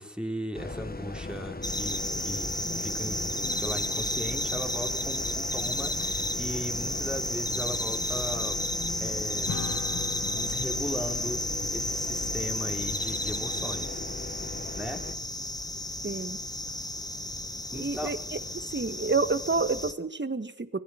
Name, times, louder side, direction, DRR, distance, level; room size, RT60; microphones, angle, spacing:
voice 1, 0.0-8.6 9.0-9.6 10.3-14.0 14.7-15.1 17.7-18.2, equal, 5° right, 4 dB, 3.6 m, -38 dB
sound 1, 0.5-15.2, left 2 dB, 30° left, 1.7 m, -39 dB
sound 2, 1.6-19.9, left 1 dB, 10° left, 1.6 m, -32 dB
Acoustic guitar / Strum, 9.5-14.2, left 6 dB, 80° left, 1.7 m, -43 dB
voice 2, 16.0-16.4 17.7-18.2 18.7-20.8, right 3 dB, 35° right, 12 dB, 1.7 m, -28 dB
24.5 x 17.5 x 7.4 m, 0.70 s
cardioid pair, 45°, 30 cm